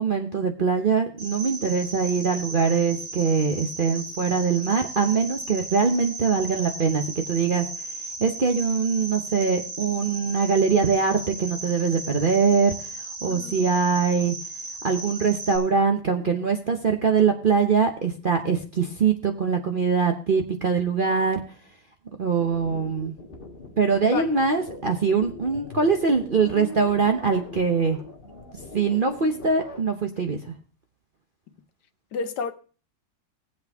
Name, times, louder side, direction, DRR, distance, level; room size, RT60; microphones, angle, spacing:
voice 1, 0.0-7.6 8.2-12.7 13.2-14.4 14.8-21.4 22.2-23.1 23.8-28.0 28.7-30.5, right 5 dB, 45° right, 0.7 m, -23 dB
Cricket, 1.2-15.6, right 2 dB, 70° right, 4.3 m, -36 dB
voice 2, 13.2-13.6 24.0-24.3 32.1-32.5, left 5 dB, 65° left, 1.5 m, -30 dB
sound 1, 22.2-29.8, left 3 dB, 30° left, 1.6 m, -41 dB
19.5 x 7.8 x 3.5 m
omnidirectional pair, 2.0 m